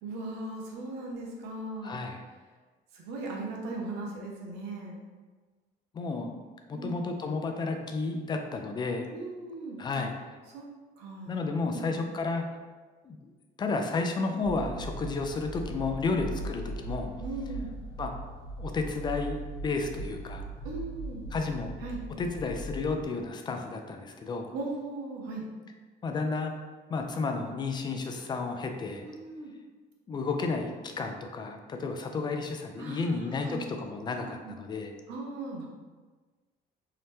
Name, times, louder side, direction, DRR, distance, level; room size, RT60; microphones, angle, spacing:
voice 1, 0.0-2.0 2.9-5.0 6.7-7.0 9.1-10.0 10.5-10.7 11.0-12.0 14.4-14.7 16.1-16.5 17.2-17.7 20.6-21.3 21.8-22.0 24.5-25.5 29.0-29.5 32.8-33.6 34.1-34.5 35.1-35.7, right 2 dB, 85° right, -1 dB, 0.7 m, -39 dB
voice 2, 1.8-2.2 5.9-6.4 6.7-9.1 9.8-10.1 11.3-12.5 13.0-13.2 13.6-17.1 18.0-18.1 18.6-20.5 21.3-21.8 22.2-24.5 26.0-26.5 26.9-29.1 30.1-34.9, left 3 dB, 25° left, 4 dB, 0.3 m, -32 dB
sound 1, 14.4-23.0, right 2 dB, 55° left, 0.9 m, -39 dB
2.8 x 2.1 x 3.3 m, 1.3 s
cardioid pair, 110°, 17 cm